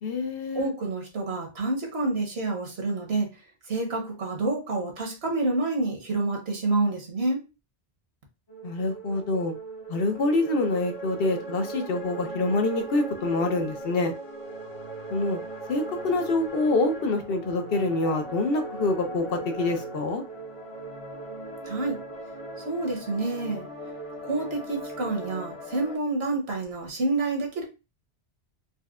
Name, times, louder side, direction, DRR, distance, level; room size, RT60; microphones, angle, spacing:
voice 1, 0.0-0.7 8.6-9.5 9.9-14.1 15.1-15.4 15.7-20.2, left 2 dB, 65° left, 5 dB, 0.8 m, -26 dB
voice 2, 0.5-3.3 3.7-7.4 21.6-22.0 22.6-23.6 24.2-27.6, right 2 dB, 70° right, 1 dB, 1.2 m, -28 dB
sound 1, 8.5-26.0, right 2 dB, 35° left, 0.7 m, -38 dB
4.1 x 2.1 x 2.3 m, 0.28 s
omnidirectional pair, 1.1 m